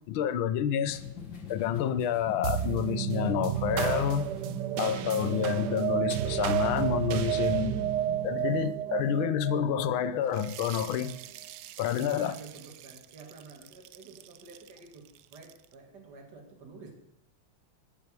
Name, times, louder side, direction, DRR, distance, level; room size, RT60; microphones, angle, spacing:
voice 1, 0.1-1.0 1.5-4.3 4.8-7.8 8.2-11.1 11.8-12.4, left 9 dB, 80° left, 14 dB, 1.5 m, -29 dB
sound 1, 0.9-8.7, left 7 dB, 60° left, 2.5 m, -45 dB
sound 2, 2.4-11.2, right 11 dB, 70° right, 1.1 m, -31 dB
sound 3, 10.3-15.7, right 13 dB, 85° right, 0.8 m, -48 dB
voice 2, 12.2-17.0, right 4 dB, 55° right, 2 dB, 2.5 m, -50 dB
12.0 x 6.8 x 7.5 m, 0.83 s
omnidirectional pair, 2.3 m